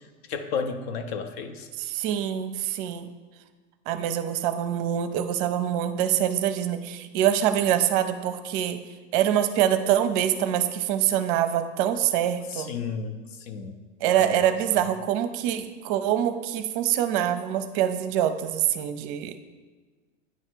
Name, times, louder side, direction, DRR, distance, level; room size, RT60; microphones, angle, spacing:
voice 1, 0.3-1.7 12.5-13.8 14.2-14.8, left 5 dB, 55° left, 7 dB, 0.7 m, -33 dB
voice 2, 1.8-3.1 3.9-8.8 9.1-12.7 14.0-19.3, right 10 dB, 45° right, 10 dB, 0.6 m, -25 dB
9.4 x 3.2 x 4.5 m, 1.4 s
hypercardioid pair, 100°, 38 cm